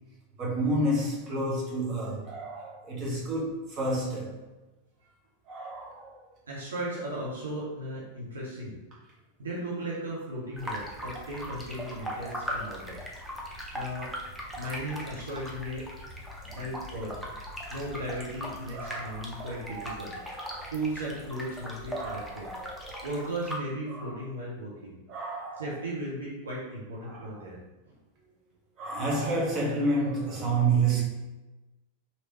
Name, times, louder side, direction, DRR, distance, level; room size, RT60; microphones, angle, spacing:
voice 1, 0.4-4.4 5.5-6.2 16.5-16.6 18.7-20.7 21.9-23.1 23.9-24.1 25.1-25.6 27.1-27.3 28.8-31.0, right 2 dB, 35° right, -4 dB, 1.1 m, -30 dB
voice 2, 6.5-8.8 9.4-13.0 13.7-15.9 16.4-17.2 17.7-20.1 20.7-22.5 23.0-24.9 25.6-27.6 27.8-28.0, right 1 dB, 70° right, -5 dB, 0.7 m, -36 dB
sound 1, 10.6-23.6, equal, ahead, 0.6 m, -39 dB
3.1 x 2.8 x 2.9 m, 1.1 s
figure-of-eight pair, 90°, 0 cm